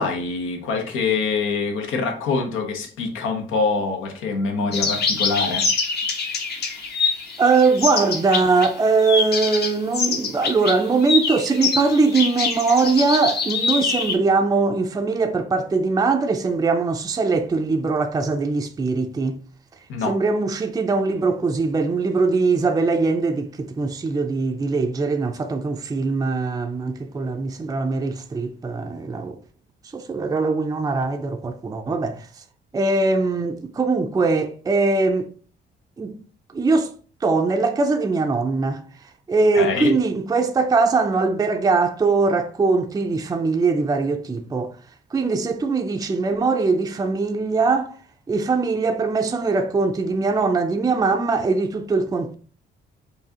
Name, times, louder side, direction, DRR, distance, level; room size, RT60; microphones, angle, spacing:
voice 1, 0.0-5.7 19.9-20.2 39.5-39.9, left 4 dB, 85° left, 0.9 m, -24 dB
sound 1, 4.7-8.7 9.0-14.2, left 4 dB, 55° left, 1.0 m, -25 dB
voice 2, 7.4-19.4 20.1-29.4 29.9-32.3 32.7-35.3 36.0-36.2 36.5-36.9 37.2-44.7 45.1-48.0 48.3-52.3, right 4 dB, 20° right, 0.4 m, -21 dB
4.7 x 2.7 x 2.8 m
cardioid pair, 90°, 20 cm